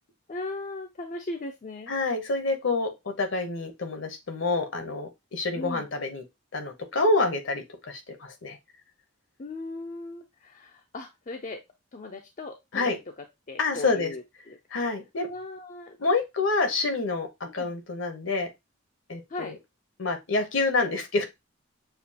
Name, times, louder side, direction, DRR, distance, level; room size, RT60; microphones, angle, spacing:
voice 1, 0.3-1.9 5.5-5.9 9.4-11.6 11.9-14.6 15.2-16.0 17.6-17.7 19.3-19.6, left 2 dB, 40° left, 4 dB, 0.4 m, -38 dB
voice 2, 1.9-6.2 6.5-8.6 12.7-13.0 13.6-14.1 14.7-15.3 16.0-18.5 19.1-19.6 20.0-21.3, left 3 dB, 65° left, 6 dB, 0.9 m, -27 dB
6.8 x 2.4 x 2.8 m, 0.21 s
head